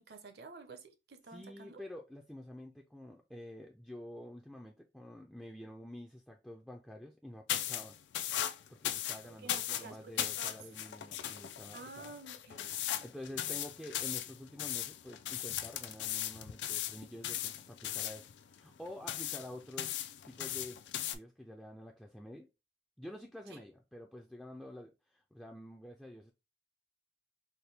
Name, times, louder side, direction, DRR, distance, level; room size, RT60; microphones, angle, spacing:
voice 1, 0.0-1.8 9.2-10.6 11.7-12.7 13.3-13.6 23.5-23.6, right 3 dB, 60° right, 0.7 m, -51 dB
voice 2, 1.3-8.0 8.7-12.2 13.0-22.5 23.0-26.3, left 1 dB, ahead, 0.3 m, -49 dB
sound 1, 7.5-21.2, left 11 dB, 85° left, 0.4 m, -38 dB
4.3 x 2.1 x 3.3 m
head